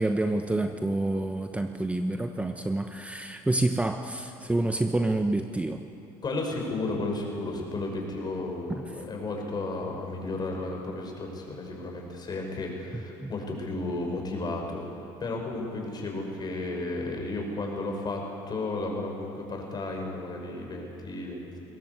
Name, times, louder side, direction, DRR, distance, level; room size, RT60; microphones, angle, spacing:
voice 1, 0.0-5.9 8.8-8.9 13.2-13.3, right 2 dB, 10° right, 6 dB, 1.0 m, -28 dB
voice 2, 6.2-14.9 15.2-18.2 18.5-21.6, left 2 dB, 35° left, 1 dB, 6.1 m, -33 dB
21.5 x 18.5 x 8.2 m, 2.8 s
supercardioid pair, 85°, 12 cm